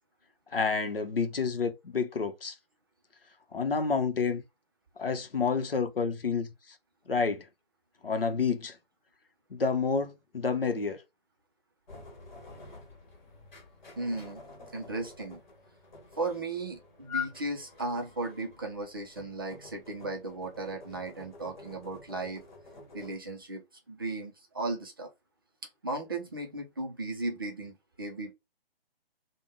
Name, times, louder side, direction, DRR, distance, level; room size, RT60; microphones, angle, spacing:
voice 1, 0.5-2.6 3.5-4.4 5.0-6.5 7.1-7.5 8.0-8.8 9.5-11.0, left 5 dB, 65° left, 0.7 m, -29 dB
sound 1, 11.9-23.2, left 6 dB, 50° left, 1.1 m, -46 dB
voice 2, 14.0-14.4 14.7-15.4 16.2-22.4 22.9-25.1 25.8-28.3, right 2 dB, 25° right, 0.5 m, -36 dB
3.4 x 2.2 x 3.1 m
figure-of-eight pair, 140°, 30 cm